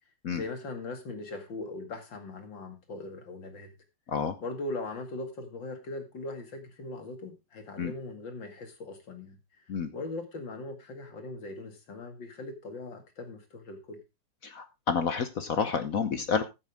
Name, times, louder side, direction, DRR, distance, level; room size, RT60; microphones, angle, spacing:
voice 1, 0.3-3.7 4.4-9.7 9.9-14.0, left 2 dB, 75° left, 6 dB, 3.0 m, -40 dB
voice 2, 14.4-16.4, left 6 dB, 55° left, 10 dB, 1.2 m, -29 dB
14.5 x 8.7 x 3.5 m, 0.25 s
omnidirectional pair, 2.0 m